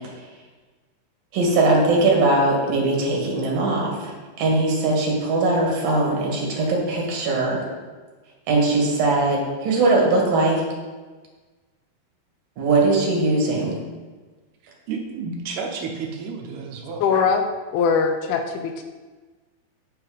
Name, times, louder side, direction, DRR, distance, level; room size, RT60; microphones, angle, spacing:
voice 1, 1.3-7.6 8.5-10.6 12.6-13.8, right 2 dB, 60° right, -2 dB, 3.3 m, -20 dB
voice 2, 14.6-17.1, right 5 dB, 80° right, 2 dB, 2.8 m, -31 dB
voice 3, 17.0-17.5 17.7-18.8, left 6 dB, 80° left, 6 dB, 2.4 m, -21 dB
8.8 x 6.3 x 5.1 m, 1.3 s
omnidirectional pair, 4.9 m